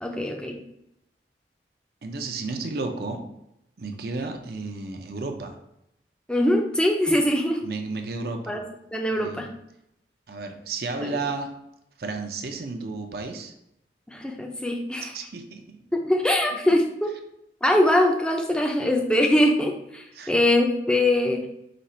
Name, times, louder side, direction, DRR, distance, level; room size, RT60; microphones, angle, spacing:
voice 1, 0.0-0.6 6.3-7.7 8.5-8.6 8.9-9.5 11.0-11.2 14.1-15.1 15.9-17.1 17.6-21.5, left 1 dB, 5° left, 2 dB, 0.5 m, -22 dB
voice 2, 2.0-3.2 3.8-5.5 7.6-8.6 9.2-9.5 10.3-11.5 12.0-13.5 15.1-15.8 20.2-20.3, right 3 dB, 55° right, 4 dB, 0.6 m, -32 dB
5.1 x 2.4 x 4.3 m, 0.81 s
head